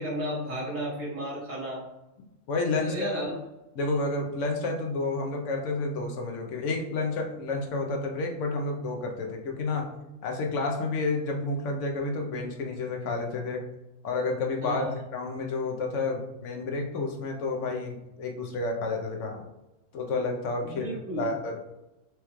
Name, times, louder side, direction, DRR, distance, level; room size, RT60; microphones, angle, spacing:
voice 1, 0.0-1.8 2.7-3.3 14.6-14.9 20.6-21.3, right 1 dB, 80° right, -6 dB, 1.8 m, -33 dB
voice 2, 2.5-3.3 3.7-9.9 10.2-13.6 14.0-19.4 19.9-20.9 21.2-21.6, left 3 dB, 70° left, 2 dB, 0.9 m, -30 dB
4.6 x 2.2 x 3.0 m, 0.97 s
omnidirectional pair, 1.4 m